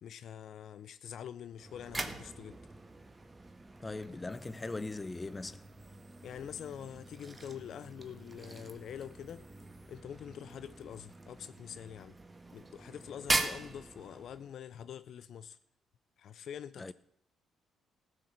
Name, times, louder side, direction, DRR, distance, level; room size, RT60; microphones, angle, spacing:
voice 1, 0.0-2.6 6.2-9.5 9.9-12.2 12.5-15.6 16.2-16.9, left 9 dB, 65° left, 0.5 m, -45 dB
sound 1, 1.6-14.6, right 2 dB, 25° right, 1.5 m, -41 dB
voice 2, 3.8-5.6 16.8-16.9, left 3 dB, 25° left, 0.7 m, -40 dB
15.5 x 6.6 x 7.4 m
supercardioid pair, 55°, 0 cm